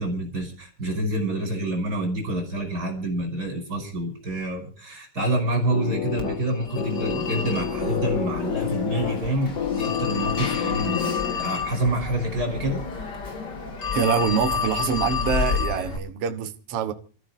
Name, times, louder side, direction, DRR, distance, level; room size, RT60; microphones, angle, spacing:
voice 1, 0.0-12.8, right 1 dB, 25° right, 5.9 m, -27 dB
sound 1, 5.7-11.7, left 8 dB, 50° left, 2.5 m, -29 dB
Telephone, 6.2-16.0, left 6 dB, 35° left, 2.5 m, -30 dB
voice 2, 13.9-16.9, right 6 dB, 55° right, 2.0 m, -25 dB
28.5 x 14.5 x 2.7 m
omnidirectional pair, 3.8 m